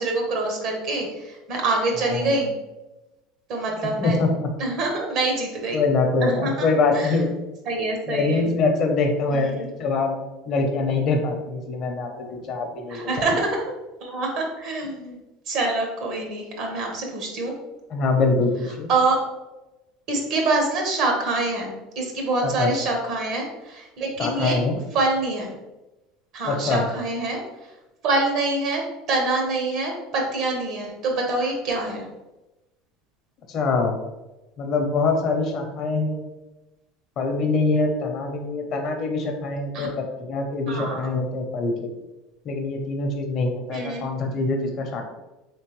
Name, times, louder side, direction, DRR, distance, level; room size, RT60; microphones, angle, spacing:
voice 1, 0.0-2.5 3.5-4.2 4.6-5.8 6.2-7.2 7.6-8.4 9.3-9.7 12.1-12.3 12.9-13.7 14.0-15.2 15.5-17.5 18.9-19.2 20.1-24.6 24.9-25.5 26.3-27.4 28.0-28.8 29.1-32.1 39.7-39.9 40.7-41.0 43.7-44.1, right 2 dB, 55° right, 1 dB, 1.2 m, -25 dB
voice 2, 4.0-4.5 5.7-7.3 8.1-13.1 17.9-18.9 22.4-22.7 24.2-24.8 26.4-26.8 33.5-33.9 34.6-36.2 37.2-39.9 40.2-41.9 42.4-45.0, left 3 dB, 50° left, 4 dB, 0.8 m, -24 dB
3.6 x 3.2 x 3.1 m, 1.0 s
supercardioid pair, 110°, 0 cm